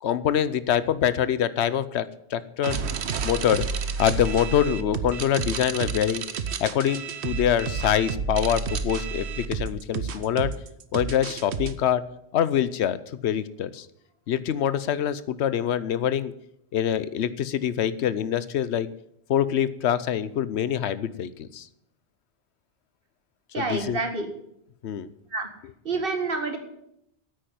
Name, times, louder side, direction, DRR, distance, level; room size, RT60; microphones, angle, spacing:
voice 1, 0.0-2.8 3.2-3.7 4.0-6.3 6.6-10.5 10.9-12.0 12.3-13.0 13.2-13.9 14.3-16.3 16.7-18.9 19.3-21.7 23.6-24.0 24.8-25.1, left 9 dB, 75° left, 15 dB, 1.0 m, -25 dB
sound 1, 2.6-11.7, right 5 dB, 75° right, 1.1 m, -30 dB
voice 2, 23.5-24.3 25.3-25.5 25.8-26.6, right 3 dB, 55° right, 5 dB, 2.0 m, -28 dB
9.4 x 8.8 x 9.3 m, 0.77 s
omnidirectional pair, 1.1 m